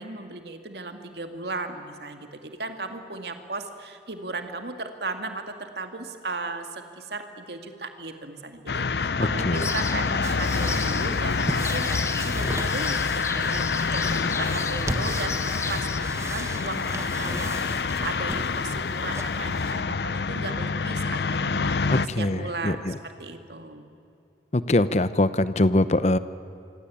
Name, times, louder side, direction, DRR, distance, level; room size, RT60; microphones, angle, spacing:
voice 1, 0.0-13.7 13.9-22.9 23.2-23.9, right 3 dB, 70° right, 6 dB, 2.3 m, -36 dB
sound 1, 8.7-22.1, left 4 dB, 70° left, 0.7 m, -27 dB
voice 2, 9.2-9.7 14.2-14.3 21.9-22.9 24.5-26.2, left 1 dB, 40° left, 14 dB, 0.8 m, -23 dB
sound 2, 9.5-16.0, left 4 dB, 15° left, 1.0 m, -36 dB
sound 3, 10.2-19.7, right 1 dB, 15° right, 1.4 m, -36 dB
26.0 x 25.0 x 8.6 m, 2.5 s
head